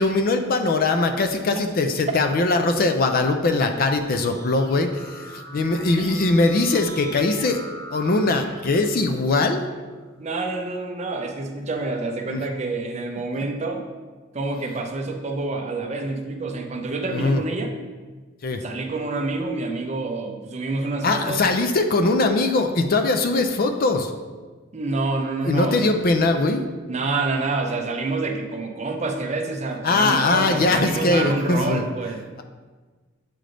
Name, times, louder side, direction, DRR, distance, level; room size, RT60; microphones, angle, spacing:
voice 1, 0.0-7.6 7.9-9.6 12.3-12.4 13.3-13.4 17.1-17.4 18.4-18.6 21.0-24.1 25.4-26.6 29.8-31.9, left 3 dB, 45° left, 6 dB, 0.4 m, -21 dB
Keyboard (musical), 3.3-9.9, right 1 dB, 20° left, 1.1 m, -42 dB
voice 2, 10.2-13.8 14.3-17.8 18.6-21.4 24.7-25.9 26.9-32.2, right 3 dB, 35° right, 4 dB, 0.5 m, -27 dB
7.6 x 3.4 x 3.8 m, 1.4 s
head